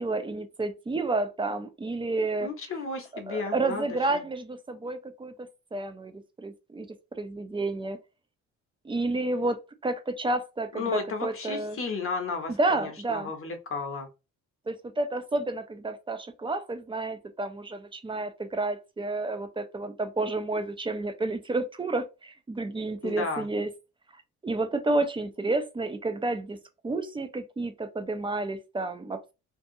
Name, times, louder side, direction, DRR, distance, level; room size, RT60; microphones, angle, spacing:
voice 1, 0.0-2.5 3.3-6.9 7.2-8.0 8.8-9.6 9.8-11.8 12.6-13.3 14.7-23.7 24.4-26.6 26.8-29.3, right 2 dB, 15° right, 0.4 m, -30 dB
voice 2, 2.4-4.2 10.8-14.1 23.0-23.5, left 4 dB, 45° left, 0.7 m, -33 dB
2.6 x 2.2 x 2.6 m
cardioid pair, 90°, 30 cm